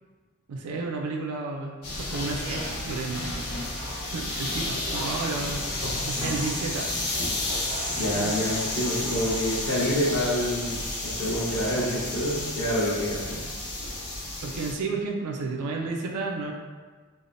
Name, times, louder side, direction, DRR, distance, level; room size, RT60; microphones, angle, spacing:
voice 1, 0.5-2.6 2.9-3.4 4.1-5.7 6.0-6.9 8.1-8.3 14.4-16.5, right 3 dB, 80° right, 2 dB, 0.4 m, -32 dB
sound 1, 1.8-14.7, left 2 dB, 80° left, 0.7 m, -31 dB
voice 2, 8.0-13.4, equal, 65° left, -8 dB, 1.0 m, -27 dB
3.3 x 2.0 x 2.5 m, 1.5 s
head